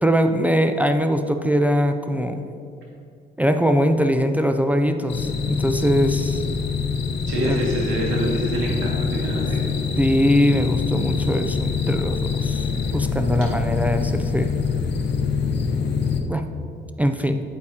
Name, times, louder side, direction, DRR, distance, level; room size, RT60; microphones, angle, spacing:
voice 1, 0.0-2.5 3.4-6.4 7.4-7.6 10.0-12.7 12.9-14.5 16.2-16.5 17.0-17.4, equal, 10° right, 6 dB, 0.4 m, -21 dB
sound 1, 5.1-16.2, left 5 dB, 60° left, 0.8 m, -25 dB
voice 2, 7.3-9.6, right 1 dB, 80° right, -3 dB, 2.0 m, -25 dB
8.6 x 8.1 x 2.8 m, 2.4 s
cardioid pair, 90°, 20 cm